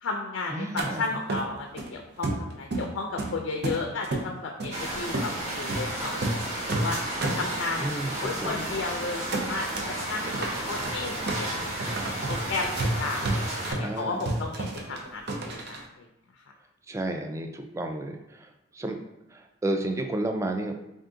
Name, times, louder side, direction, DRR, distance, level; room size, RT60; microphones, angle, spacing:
voice 1, 0.0-7.0 7.4-7.9 8.2-11.8 12.3-16.0, left 3 dB, 85° left, 2 dB, 0.4 m, -34 dB
voice 2, 0.5-1.0 7.8-8.2 8.4-8.6 13.8-14.2 16.9-18.5 18.7-19.0 19.3-20.7, right 1 dB, 15° right, 4 dB, 0.3 m, -31 dB
sound 1, 0.8-0.9 1.3-1.9 2.2-2.9 3.2-4.3 4.6-4.8 5.1-5.3 5.7-5.9 6.1-6.4 6.7-7.9 8.3-8.4 8.7-8.9 9.3-9.9 10.2-15.8, right 2 dB, 60° right, 0.6 m, -31 dB
sound 2, 4.7-13.7, right 1 dB, 40° right, 1.0 m, -33 dB
3.7 x 2.6 x 3.6 m, 0.87 s
head